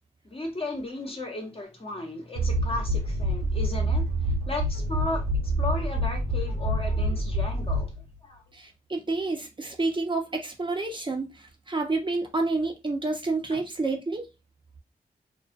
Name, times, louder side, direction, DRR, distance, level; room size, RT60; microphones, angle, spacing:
voice 1, 0.2-5.3 5.6-7.9 8.2-8.4 13.5-13.6, left 2 dB, 35° left, 1.0 m, -35 dB
sound 1, 2.3-8.2, equal, 60° right, 1.1 m, -27 dB
voice 2, 8.5-14.3, right 3 dB, 30° right, 0.7 m, -29 dB
2.4 x 2.3 x 2.5 m
cardioid pair, 55°, 17 cm